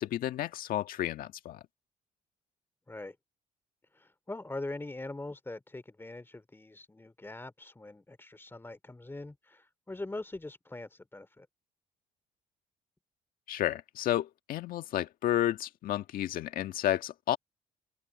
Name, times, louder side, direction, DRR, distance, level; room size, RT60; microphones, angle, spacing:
voice 1, 0.0-1.6 13.5-17.4, left 12 dB, 75° left, 1.7 m, -31 dB
voice 2, 3.9-11.5, left 2 dB, 15° left, 3.1 m, -42 dB
open air
supercardioid pair, 75°, 15 cm